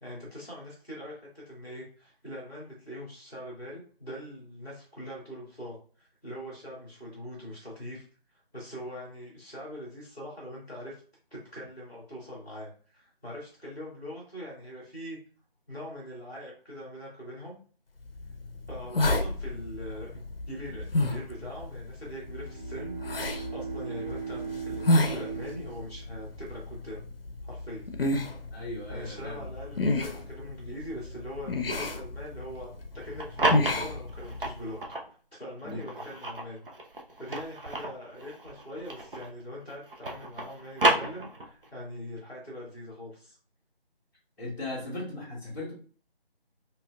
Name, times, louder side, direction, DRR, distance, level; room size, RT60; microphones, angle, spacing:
voice 1, 0.0-8.0 8.5-11.0 11.3-15.2 15.7-17.6 18.7-27.0 27.4-27.8 28.9-34.8 35.3-36.6 37.2-43.4, equal, 5° right, -18 dB, 0.9 m, -42 dB
sound 1, 18.1-34.7, left 2 dB, 65° left, 0.6 m, -32 dB
Bowed string instrument, 22.2-26.5, right 6 dB, 45° right, 1.3 m, -39 dB
voice 2, 28.5-29.4 35.6-36.1 44.4-45.7, left 2 dB, 15° left, -11 dB, 1.2 m, -37 dB
sound 2, 33.0-35.1 35.7-39.4 39.7-41.7, right 2 dB, 60° right, 0.8 m, -30 dB
4.2 x 2.6 x 2.3 m, 0.41 s
figure-of-eight pair, 165°, 30 cm